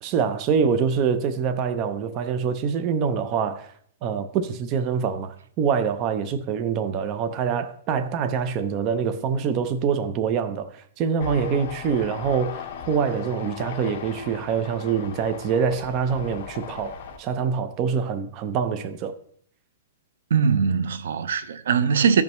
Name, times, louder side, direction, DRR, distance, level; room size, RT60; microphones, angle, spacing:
voice 1, 0.0-3.7 4.0-19.2, right 6 dB, 25° right, 0.5 m, -25 dB
sound 1, 11.2-17.2, left 7 dB, 45° left, 1.0 m, -38 dB
voice 2, 20.3-22.2, right 6 dB, 80° right, 0.6 m, -21 dB
14.5 x 5.4 x 3.0 m
hypercardioid pair, 165°, 0 cm